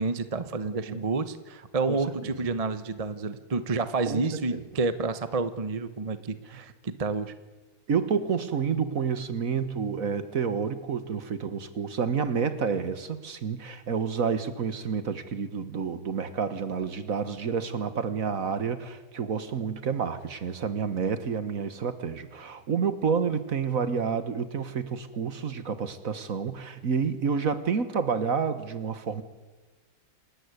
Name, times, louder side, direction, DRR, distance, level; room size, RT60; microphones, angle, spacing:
voice 1, 0.0-7.3, right 3 dB, 30° right, 12 dB, 0.7 m, -29 dB
voice 2, 7.9-29.2, right 6 dB, 45° right, 11 dB, 1.5 m, -29 dB
27.5 x 13.5 x 9.7 m, 1.3 s
omnidirectional pair, 2.2 m